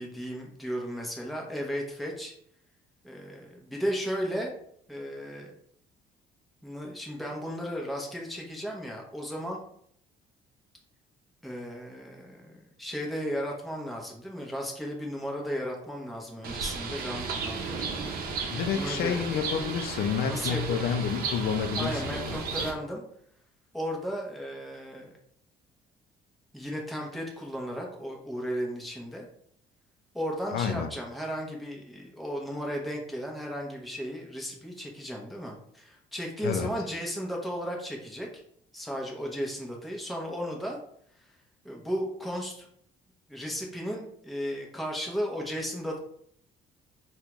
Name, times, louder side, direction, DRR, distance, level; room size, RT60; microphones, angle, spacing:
voice 1, 0.0-2.3 3.0-4.5 4.9-5.5 6.6-9.6 11.4-17.9 18.7-19.3 20.3-20.8 21.8-23.0 23.7-25.1 26.5-29.3 30.1-38.3 38.7-40.8 41.1-41.3 41.6-42.7 43.3-46.0, equal, ahead, -1 dB, 0.7 m, -35 dB
Bird, 16.4-22.7, right 4 dB, 60° right, 0.7 m, -34 dB
voice 2, 18.5-22.7 30.5-30.9 36.4-36.7, left 7 dB, 65° left, 7 dB, 0.5 m, -29 dB
3.6 x 2.2 x 2.9 m, 0.65 s
cardioid pair, 110°, 17 cm